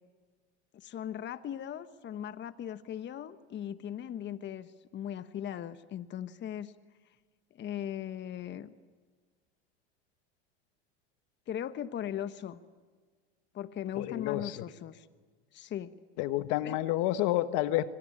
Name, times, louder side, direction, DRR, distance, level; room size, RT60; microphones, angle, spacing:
voice 1, 0.7-6.7 7.5-8.7 11.5-12.6 13.5-15.1 15.5-15.9 16.6-16.8, left 10 dB, 35° left, 12 dB, 1.1 m, -38 dB
voice 2, 14.0-14.6 16.2-17.9, left 15 dB, 65° left, 12 dB, 1.3 m, -29 dB
26.0 x 25.0 x 8.7 m, 1.5 s
supercardioid pair, 100°, 32 cm